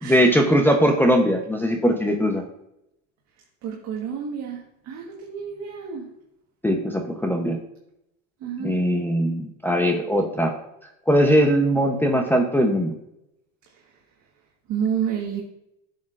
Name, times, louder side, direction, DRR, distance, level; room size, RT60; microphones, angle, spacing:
voice 1, 0.0-2.4 6.6-7.6 8.6-10.5 11.1-12.9, equal, 5° left, 0 dB, 0.8 m, -20 dB
voice 2, 3.6-6.1 8.4-8.8 14.7-15.4, right 7 dB, 50° right, -1 dB, 1.4 m, -29 dB
10.5 x 6.5 x 2.5 m, 0.82 s
supercardioid pair, 115°, 36 cm